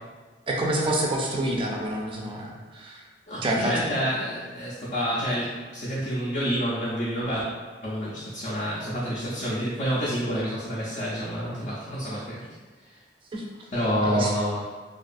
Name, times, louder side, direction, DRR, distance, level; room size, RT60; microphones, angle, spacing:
voice 1, 0.5-3.0 3.4-3.9 13.3-13.5 14.0-14.3, right 1 dB, 30° right, -1 dB, 0.3 m, -27 dB
voice 2, 3.3-7.4 7.8-12.4 13.7-14.6, equal, 45° left, -8 dB, 0.5 m, -28 dB
2.5 x 2.3 x 2.5 m, 1.3 s
head